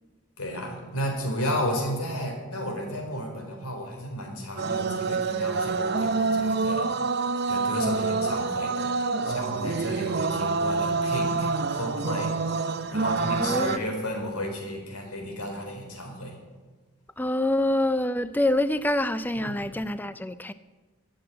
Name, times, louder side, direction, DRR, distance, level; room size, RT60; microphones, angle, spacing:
voice 1, 0.4-16.4 19.3-19.7, equal, 90° left, 3 dB, 4.0 m, -33 dB
sound 1, 4.6-13.8, right 4 dB, 50° right, 0.6 m, -27 dB
voice 2, 13.4-13.8 17.2-20.5, left 1 dB, 10° left, 13 dB, 0.4 m, -26 dB
14.5 x 7.8 x 9.8 m, 1.3 s
head